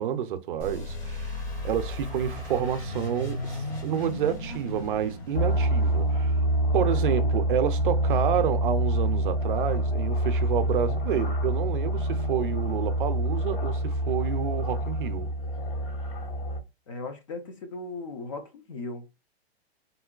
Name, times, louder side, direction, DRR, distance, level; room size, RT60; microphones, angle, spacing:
voice 1, 0.0-6.5 6.7-15.3, right 9 dB, 55° right, 0.5 m, -29 dB
sound 1, 0.6-7.2, left 1 dB, 75° left, 1.8 m, -36 dB
sound 2, 5.3-16.6, right 1 dB, 55° left, 1.3 m, -26 dB
voice 2, 16.9-19.1, left 3 dB, 30° left, 0.4 m, -37 dB
3.7 x 2.1 x 2.3 m
hypercardioid pair, 165°, 32 cm